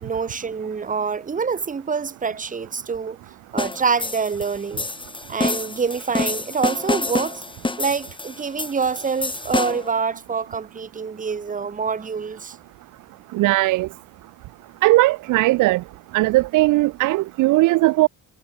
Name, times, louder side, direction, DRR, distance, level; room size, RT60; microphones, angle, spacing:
voice 1, 0.0-3.2 3.5-4.9 5.3-7.4 7.8-12.6, right 5 dB, 25° right, 1.1 m, -26 dB
sound 1, 3.6-10.0, left 3 dB, 15° left, 2.0 m, -28 dB
voice 2, 13.3-13.9 14.8-15.8 16.1-18.1, right 19 dB, 85° right, 0.5 m, -18 dB
cardioid pair, 90°, 30 cm